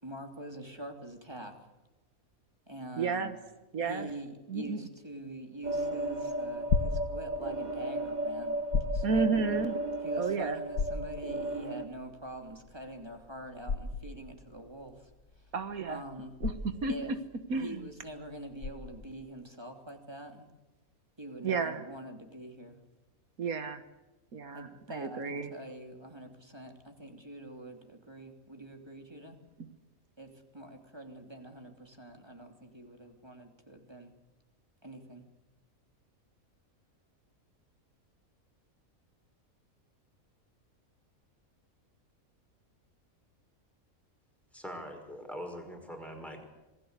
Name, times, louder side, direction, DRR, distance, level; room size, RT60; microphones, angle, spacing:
voice 1, 0.0-1.6 2.7-3.3 3.8-9.5 10.0-15.1 15.4-15.5 15.9-16.3 16.9-17.1 17.6-20.5 21.2-22.8 24.5-29.4 30.2-34.1 34.8-35.2, right 1 dB, 20° right, 4 dB, 3.1 m, -45 dB
voice 2, 3.0-3.4 3.7-4.1 4.5-4.9 9.0-9.8 10.2-10.6 15.5-16.0 16.4-17.2 17.5-17.8 21.4-21.8 23.4-23.8 24.3-25.5 29.6-29.7, right 5 dB, 80° right, 9 dB, 1.8 m, -32 dB
sound 1, 5.6-11.9, right 1 dB, 35° right, 1.3 m, -35 dB
sound 2, 5.7-19.2, left 4 dB, 75° left, 1.8 m, -35 dB
voice 3, 44.5-46.5, equal, ahead, 3 dB, 5.2 m, -42 dB
27.0 x 20.0 x 8.2 m, 1.1 s
omnidirectional pair, 1.5 m